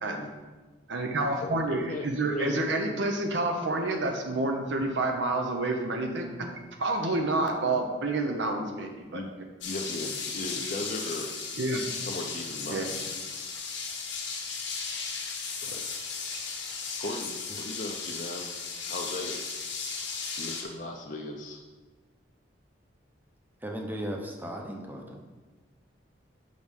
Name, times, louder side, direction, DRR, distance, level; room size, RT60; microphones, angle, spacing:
voice 1, 0.9-6.3 6.8-9.2 11.6-11.8 12.7-12.9, right 2 dB, 75° right, 3 dB, 1.0 m, -28 dB
voice 2, 1.4-2.5 9.1-9.3 9.6-11.3 12.0-13.0 15.6-15.8 17.0-18.6 18.9-19.6 20.4-21.6, left 1 dB, 45° left, 1 dB, 0.6 m, -37 dB
sound 1, 9.6-20.6, left 5 dB, 85° left, 1.4 m, -36 dB
voice 3, 23.6-25.2, equal, 10° right, 2 dB, 0.8 m, -36 dB
6.2 x 5.2 x 5.3 m, 1.3 s
head